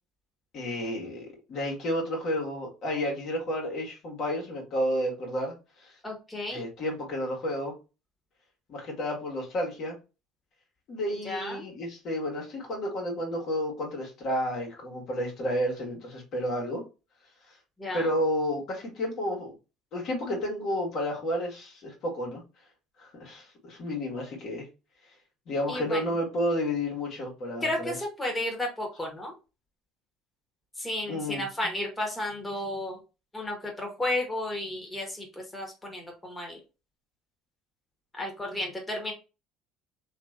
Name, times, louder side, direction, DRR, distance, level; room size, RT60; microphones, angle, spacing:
voice 1, 0.5-5.9 6.5-7.8 8.7-9.9 10.9-16.8 17.9-19.5 19.9-22.4 23.0-24.7 25.5-27.9 31.1-31.4, equal, 55° left, -1 dB, 1.3 m, -31 dB
voice 2, 6.0-6.7 11.2-11.7 17.8-18.1 25.7-26.0 27.6-29.3 30.8-33.0 33.3-36.6 38.1-39.1, left 1 dB, 15° left, 1 dB, 1.1 m, -33 dB
3.1 x 2.7 x 2.4 m, 0.30 s
hypercardioid pair, 75°, 0 cm